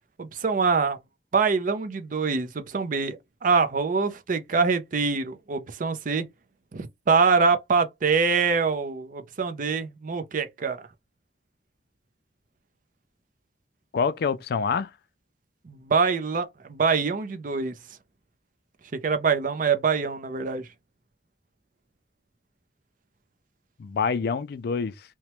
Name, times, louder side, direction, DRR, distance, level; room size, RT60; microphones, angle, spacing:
voice 1, 0.2-1.0 1.3-6.2 6.7-10.8 15.7-17.7 19.0-20.6, right 5 dB, 50° right, 0.5 m, -24 dB
voice 2, 13.9-14.9 23.8-24.9, left 5 dB, 60° left, 0.4 m, -26 dB
2.9 x 2.2 x 3.0 m
head